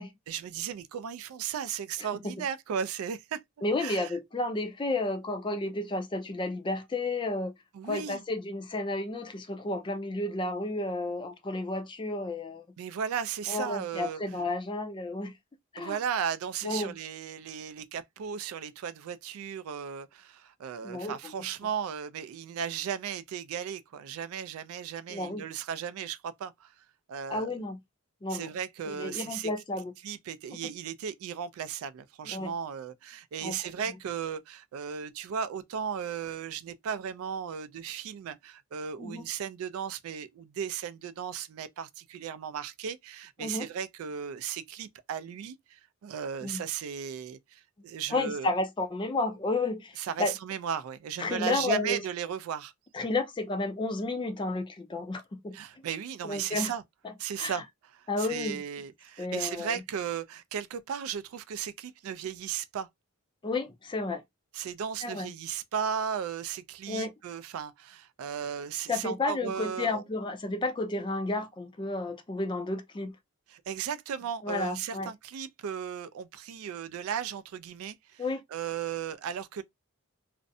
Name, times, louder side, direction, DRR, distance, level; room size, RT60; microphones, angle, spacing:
voice 1, 0.3-3.4 3.8-4.1 7.7-8.2 12.8-14.2 15.8-26.7 27.1-27.6 28.3-29.5 30.0-48.5 50.0-52.7 55.5-56.8 57.2-57.6 58.2-62.9 64.5-70.0 73.5-78.2 78.5-79.6, right 8 dB, 70° right, 0.3 m, -36 dB
voice 2, 3.6-7.5 7.8-12.7 13.5-15.3 15.7-16.0 16.6-16.9 20.8-21.3 25.1-25.4 27.3-27.8 28.2-28.5 28.8-29.9 32.3-32.5 33.4-33.6 39.0-39.2 43.4-43.7 46.4-46.6 48.1-50.4 51.2-52.1 52.9-55.8 56.2-56.7 57.0-57.6 58.1-58.6 59.2-59.8 63.4-64.2 65.0-65.3 66.9-67.1 68.9-73.1 74.4-75.1 78.2-78.4, left 2 dB, 20° left, 0.4 m, -32 dB
2.5 x 2.0 x 2.6 m
head